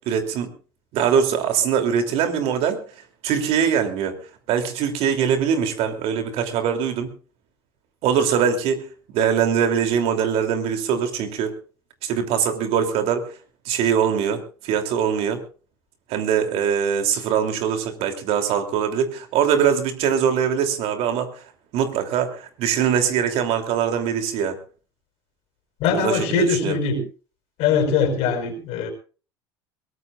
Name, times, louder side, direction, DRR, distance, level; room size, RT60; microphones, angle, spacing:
voice 1, 0.1-0.5 0.9-2.8 3.2-4.2 4.5-7.1 8.0-8.9 9.1-11.5 12.0-13.3 13.6-15.4 16.1-21.3 21.7-24.6 25.9-26.8, right 8 dB, 60° right, 6 dB, 3.1 m, -22 dB
voice 2, 25.8-27.0 27.6-28.9, left 5 dB, 65° left, 6 dB, 5.2 m, -21 dB
22.5 x 18.5 x 2.5 m, 0.37 s
hypercardioid pair, 80°, 11 cm